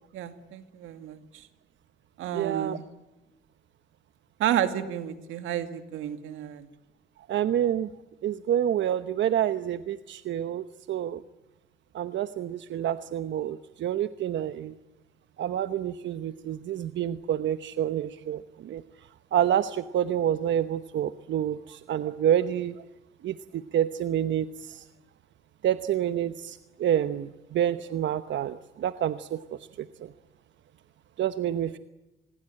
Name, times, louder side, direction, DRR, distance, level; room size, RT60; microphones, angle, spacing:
voice 1, 0.1-1.5 2.2-2.8 4.4-6.7, right 10 dB, 90° right, 10 dB, 2.2 m, -31 dB
voice 2, 2.3-2.8 7.3-7.9 8.2-11.2 11.9-14.7 15.4-18.8 19.3-22.8 23.2-24.8 25.6-29.4 29.8-29.9 31.2-31.8, right 10 dB, 70° right, 12 dB, 1.0 m, -28 dB
27.0 x 21.0 x 8.8 m, 1.0 s
cardioid pair, 90°, 20 cm